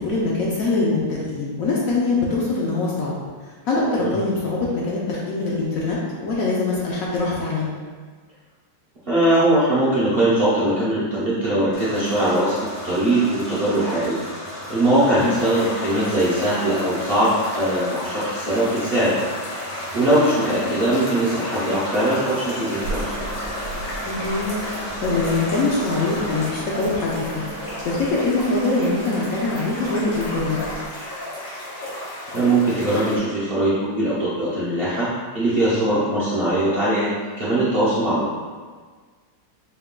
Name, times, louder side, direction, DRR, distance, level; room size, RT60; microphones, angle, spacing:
voice 1, 0.0-3.2 3.7-7.7 15.2-15.4 20.5-20.7 24.1-27.4 27.8-30.6, left 3 dB, 65° left, -5 dB, 0.9 m, -23 dB
voice 2, 9.1-14.2 14.7-19.2 19.9-23.2 32.3-37.1 37.4-38.3, right 1 dB, 50° right, -10 dB, 0.7 m, -21 dB
sound 1, 11.7-26.5, left 1 dB, 40° left, 0.8 m, -35 dB
sound 2, 15.2-33.2, left 1 dB, 90° left, 1.7 m, -34 dB
sound 3, 22.8-30.8, right 2 dB, 75° right, 1.1 m, -35 dB
4.5 x 2.2 x 3.6 m, 1.5 s
omnidirectional pair, 1.8 m